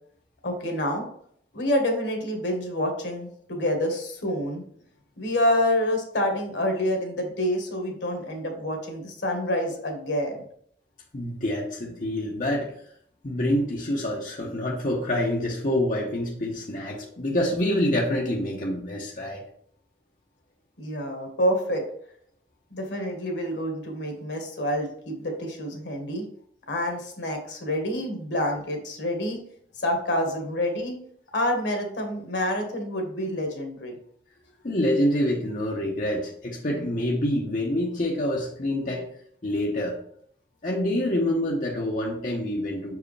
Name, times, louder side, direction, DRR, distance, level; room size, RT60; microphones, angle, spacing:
voice 1, 0.4-1.0 1.5-4.6 5.2-10.4 20.8-21.8 22.7-26.2 26.7-29.4 29.8-31.0 31.3-34.0, left 1 dB, 80° left, 3 dB, 1.4 m, -27 dB
voice 2, 11.1-12.7 13.2-19.4 34.6-39.1 39.4-40.0 40.6-43.0, left 1 dB, 45° left, -2 dB, 0.9 m, -26 dB
6.2 x 4.7 x 3.3 m, 0.65 s
head